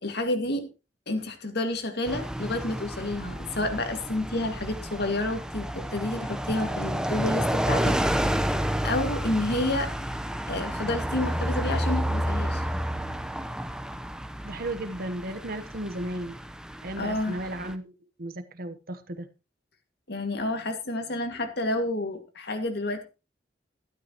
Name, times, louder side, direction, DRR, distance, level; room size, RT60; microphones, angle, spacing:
voice 1, 0.0-0.7 1.1-8.6 8.8-9.9 10.5-12.6 17.0-17.4 20.1-23.0, left 2 dB, 65° left, 6 dB, 2.1 m, -30 dB
sound 1, 2.1-17.7, equal, 5° right, 0.8 m, -30 dB
voice 2, 14.4-16.4 16.8-19.3, right 1 dB, 55° right, 10 dB, 1.1 m, -35 dB
13.0 x 11.5 x 3.0 m, 0.29 s
head